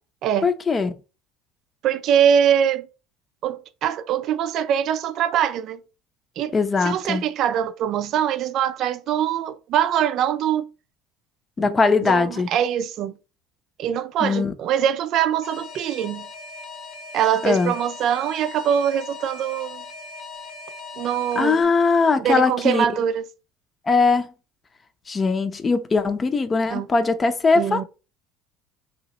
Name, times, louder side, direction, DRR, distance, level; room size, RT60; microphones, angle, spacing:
voice 1, 0.4-0.9 6.5-7.3 11.6-12.5 14.2-14.5 17.4-17.7 21.4-22.9 23.9-24.3 25.1-27.8, left 4 dB, 25° left, 0.7 m, -20 dB
voice 2, 1.8-2.9 3.4-5.8 6.4-6.5 6.8-10.7 11.6-11.7 12.0-13.1 13.8-16.3 17.1-19.8 21.0-21.6 22.2-23.2 26.7-26.9 27.5-27.8, right 9 dB, 60° right, 0.4 m, -23 dB
Alarm, 15.4-21.6, left 3 dB, 65° left, 1.0 m, -39 dB
2.9 x 2.9 x 4.2 m
supercardioid pair, 95°, 0 cm